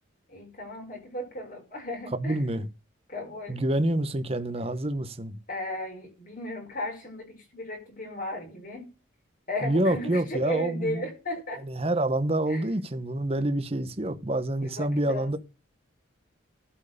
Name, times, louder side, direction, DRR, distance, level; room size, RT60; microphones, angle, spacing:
voice 1, 0.3-2.4 3.1-3.6 5.5-8.9 9.5-11.6 12.5-12.6 14.6-15.3, left 1 dB, 40° left, 5.0 m, -35 dB
voice 2, 2.1-2.7 3.5-5.4 9.6-11.1 11.6-15.4, right 1 dB, 30° right, 0.9 m, -27 dB
12.0 x 4.6 x 6.7 m
head